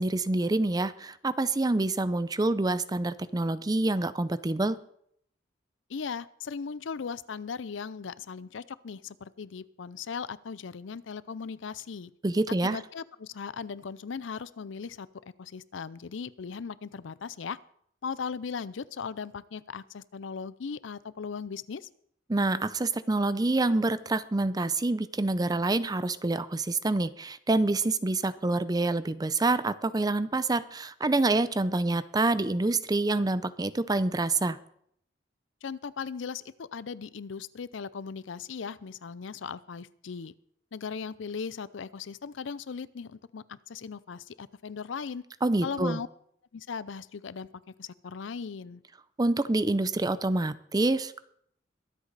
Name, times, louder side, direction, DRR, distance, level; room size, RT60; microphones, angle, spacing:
voice 1, 0.0-4.8 12.2-12.8 22.3-34.6 45.4-46.0 49.2-51.3, right 2 dB, 20° right, 15 dB, 0.5 m, -27 dB
voice 2, 5.9-12.1 12.6-15.1 15.4-17.6 18.0-21.9 35.6-40.3 40.7-45.2 45.6-46.1 46.5-47.5 47.8-48.8, left 5 dB, 80° left, 18 dB, 0.5 m, -38 dB
22.5 x 8.2 x 4.0 m, 0.68 s
head